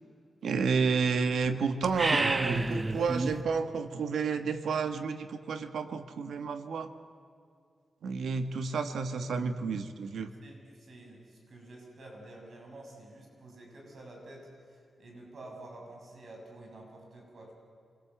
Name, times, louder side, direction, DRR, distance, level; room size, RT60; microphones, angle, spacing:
voice 1, 0.4-6.9 8.0-10.3, right 5 dB, 90° right, 9 dB, 1.4 m, -30 dB
sound 1, 1.8-3.4, right 2 dB, 30° right, 1.2 m, -29 dB
voice 2, 10.4-17.5, right 2 dB, 70° right, 0 dB, 6.9 m, -49 dB
27.5 x 21.0 x 8.1 m, 2.3 s
cardioid pair, 65°, 0 cm